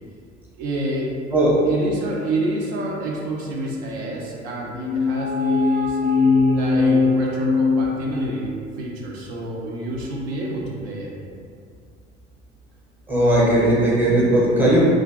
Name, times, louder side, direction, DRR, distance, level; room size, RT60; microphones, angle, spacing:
voice 1, 0.6-1.1 1.6-6.0 6.5-11.1, right 1 dB, 60° right, -2 dB, 0.5 m, -28 dB
sound 1, 4.7-8.5, left 4 dB, 30° left, 0.4 m, -20 dB
voice 2, 13.1-14.8, right 1 dB, 5° right, -7 dB, 0.7 m, -17 dB
2.5 x 2.3 x 2.4 m, 2.2 s
figure-of-eight pair, 65°, 36 cm